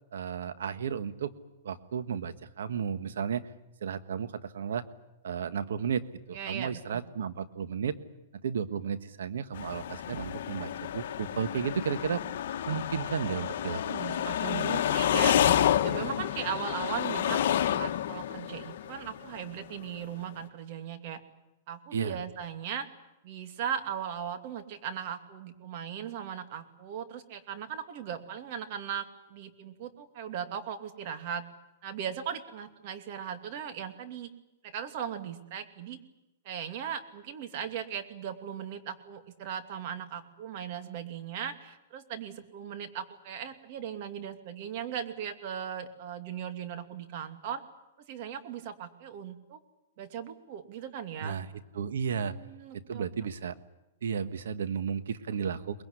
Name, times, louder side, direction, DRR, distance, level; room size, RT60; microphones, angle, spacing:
voice 1, 0.1-1.3 1.6-3.5 3.8-4.8 5.2-8.0 8.3-12.2 12.7-14.1 21.9-22.2 51.2-51.5 51.7-52.3 52.7-53.6 54.0-55.8, right 7 dB, 85° right, 12 dB, 1.5 m, -33 dB
voice 2, 6.3-7.0 13.9-15.3 15.8-21.2 21.7-22.9 23.2-31.4 31.8-34.3 34.6-36.0 36.4-47.6 48.0-49.6 50.0-51.4 52.2-53.0, right 8 dB, 50° right, 8 dB, 2.6 m, -38 dB
sound 1, 9.5-19.6, left 10 dB, 65° left, 1.3 m, -29 dB
23.0 x 21.0 x 9.7 m, 0.92 s
hypercardioid pair, 145°, 0 cm